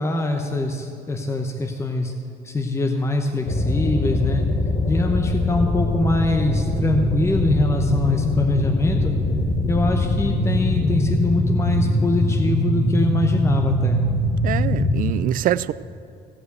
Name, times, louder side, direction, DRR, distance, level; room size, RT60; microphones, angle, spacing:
voice 1, 0.0-2.1 2.4-4.4 4.9-9.1 9.7-14.0, left 2 dB, 15° left, 3 dB, 0.9 m, -23 dB
sound 1, 3.5-15.1, left 1 dB, 50° left, 1.3 m, -22 dB
voice 2, 14.4-15.7, right 13 dB, 55° right, 18 dB, 0.4 m, -24 dB
16.5 x 5.6 x 8.1 m, 2.5 s
cardioid pair, 110°, 17 cm